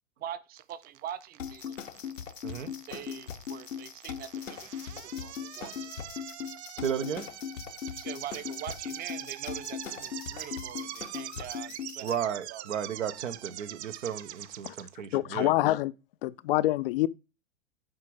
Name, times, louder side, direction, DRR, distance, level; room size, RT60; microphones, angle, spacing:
voice 1, 0.2-1.8 2.9-4.6 4.9-5.8 7.9-12.1 12.5-12.6, right 10 dB, 25° right, 0.7 m, -43 dB
sound 1, 0.6-14.9, right 13 dB, 60° right, 0.7 m, -43 dB
sound 2, 1.4-12.2, left 8 dB, 85° left, 0.9 m, -39 dB
voice 2, 6.8-7.3 12.0-15.5, right 8 dB, 75° right, 1.1 m, -34 dB
voice 3, 15.1-15.9 16.2-17.1, left 16 dB, 50° left, 0.5 m, -26 dB
7.7 x 5.1 x 4.7 m
hypercardioid pair, 100°, 38 cm